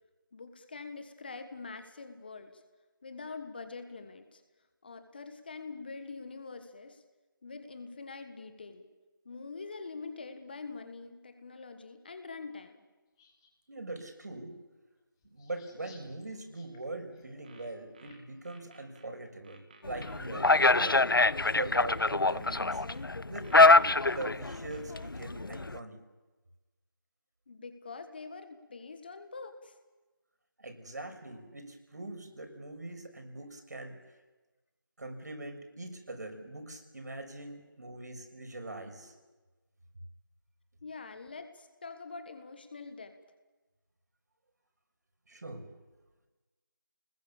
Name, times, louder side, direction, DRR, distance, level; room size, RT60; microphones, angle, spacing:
voice 1, 0.3-2.6 3.0-4.4 4.8-7.0 7.4-8.9 9.2-12.8 27.5-29.7 40.8-43.1, left 4 dB, 25° left, 9 dB, 1.5 m, -44 dB
sound 1, 13.2-13.5 14.1-14.2 15.2-18.4, left 5 dB, 10° left, 2.1 m, -62 dB
voice 2, 13.7-14.6 15.3-21.0 21.4-22.8 23.3-23.5 24.1-26.0 30.6-34.0 35.0-39.1 45.3-45.7, right 2 dB, 50° right, 5 dB, 5.8 m, -42 dB
sound 2, 17.3-19.1 19.4-20.7 21.4-23.1 23.4-25.1, right 4 dB, 25° right, 2.5 m, -58 dB
sound 3, 19.8-25.8, left 3 dB, 80° left, 0.7 m, -24 dB
30.0 x 21.0 x 7.2 m, 1.2 s
figure-of-eight pair, 165°, 11 cm